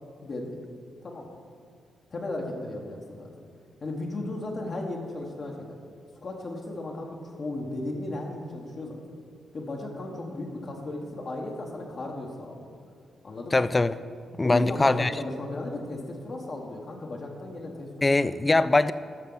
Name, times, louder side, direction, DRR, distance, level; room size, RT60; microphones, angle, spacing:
voice 1, 0.2-0.6 1.0-1.4 2.1-3.4 3.8-5.8 6.2-9.0 9.5-12.7 13.2-13.6 14.4-17.9, left 2 dB, 50° left, -1 dB, 1.2 m, -35 dB
voice 2, 13.5-13.9 14.4-15.1 18.0-18.9, left 2 dB, 25° left, 15 dB, 0.3 m, -22 dB
12.5 x 5.8 x 3.9 m, 2.1 s
cardioid pair, 75°, 0 cm